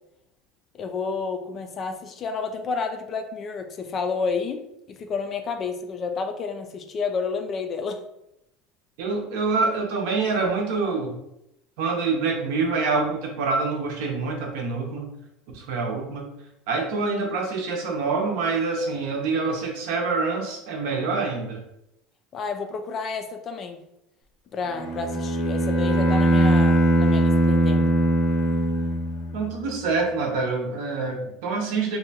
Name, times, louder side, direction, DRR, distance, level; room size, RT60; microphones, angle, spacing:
voice 1, 0.8-4.6 4.9-8.0 22.3-23.8 24.5-28.0, left 4 dB, 30° left, 6 dB, 0.3 m, -30 dB
voice 2, 9.0-11.2 11.8-15.1 15.5-16.3 16.7-21.6 29.3-32.0, right 4 dB, 75° right, 2 dB, 0.7 m, -26 dB
Bowed string instrument, 24.8-29.6, right 1 dB, 65° left, 0.6 m, -21 dB
2.7 x 2.2 x 2.7 m, 0.81 s
supercardioid pair, 140°, 0 cm